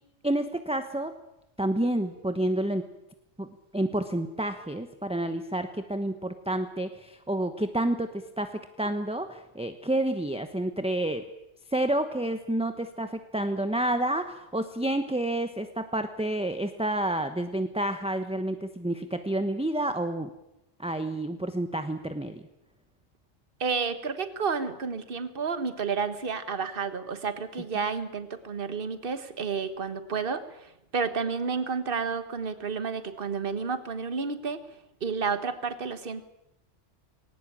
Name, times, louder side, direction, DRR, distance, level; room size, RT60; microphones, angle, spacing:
voice 1, 0.2-1.1 1.6-2.8 3.4-11.2 11.7-20.3 20.8-22.5 27.7-27.8, right 1 dB, 5° right, 8 dB, 1.0 m, -29 dB
voice 2, 23.6-34.6 35.0-36.2, right 5 dB, 50° right, 11 dB, 1.6 m, -31 dB
20.5 x 19.0 x 8.8 m, 0.87 s
omnidirectional pair, 1.2 m